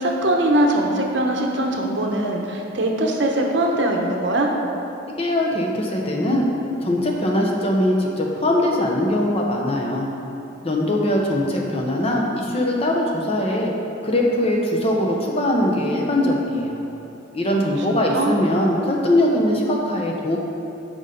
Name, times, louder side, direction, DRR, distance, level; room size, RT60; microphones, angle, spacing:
voice 1, 0.0-4.5 17.5-18.3, right 1 dB, 60° right, 1 dB, 0.8 m, -22 dB
voice 2, 5.2-6.4 6.8-10.1 10.6-13.7 14.0-16.8 17.3-20.4, left 1 dB, 30° left, 0 dB, 0.8 m, -21 dB
6.2 x 5.3 x 5.1 m, 3.0 s
head